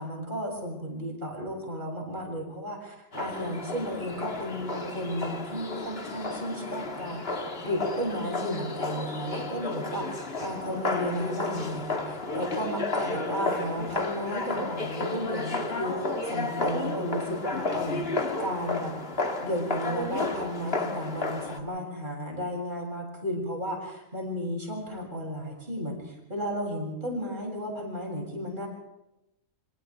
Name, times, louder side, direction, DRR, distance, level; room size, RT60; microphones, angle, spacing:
voice 1, 0.0-18.1 18.4-19.0 19.4-28.7, equal, 35° right, -1 dB, 7.2 m, -34 dB
sound 1, 3.1-21.6, left 3 dB, 45° left, 2.3 m, -32 dB
29.0 x 27.0 x 3.5 m, 0.88 s
omnidirectional pair, 1.4 m